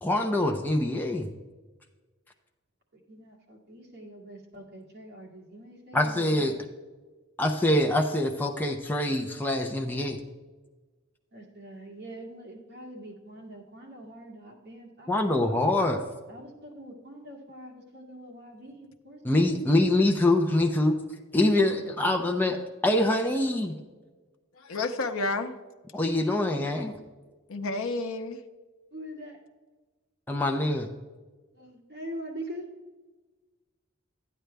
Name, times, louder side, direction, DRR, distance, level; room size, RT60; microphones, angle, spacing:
voice 1, 0.0-1.3 5.9-6.5 7.4-10.2 15.1-16.0 19.2-21.0 21.3-23.8 25.9-27.0 30.3-30.9, left 1 dB, 10° left, 2 dB, 0.6 m, -24 dB
voice 2, 2.9-6.6 11.3-15.1 15.5-15.6 16.3-19.6 21.8-22.1 28.9-29.4 31.5-32.7, right 1 dB, 50° right, 0 dB, 2.0 m, -44 dB
voice 3, 24.5-25.5 27.5-28.4, left 3 dB, 85° left, 6 dB, 0.7 m, -30 dB
12.0 x 9.2 x 3.4 m, 1.3 s
head